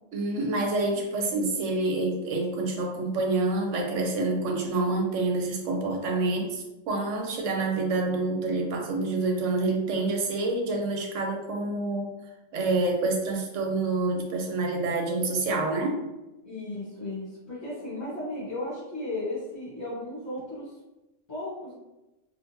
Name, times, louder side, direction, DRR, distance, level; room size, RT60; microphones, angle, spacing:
voice 1, 0.1-12.1 12.5-16.0, right 2 dB, 70° right, 2 dB, 1.0 m, -27 dB
voice 2, 16.4-20.7 21.3-21.7, left 2 dB, 35° left, -11 dB, 1.3 m, -35 dB
3.6 x 2.5 x 2.7 m, 1.0 s
omnidirectional pair, 1.3 m